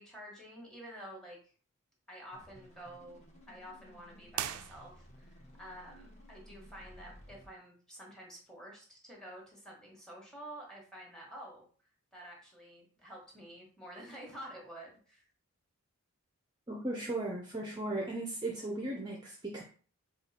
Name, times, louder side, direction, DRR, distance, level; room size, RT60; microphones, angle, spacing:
voice 1, 0.0-1.5 2.1-3.2 3.5-11.7 12.1-15.2, equal, 5° left, -2 dB, 1.2 m, -49 dB
sound 1, 2.3-7.5, equal, 30° left, 1.0 m, -56 dB
sound 2, 4.3-5.4, right 11 dB, 85° right, 0.3 m, -40 dB
voice 2, 16.7-19.6, right 2 dB, 20° right, -1 dB, 0.5 m, -37 dB
4.5 x 2.4 x 4.1 m, 0.42 s
head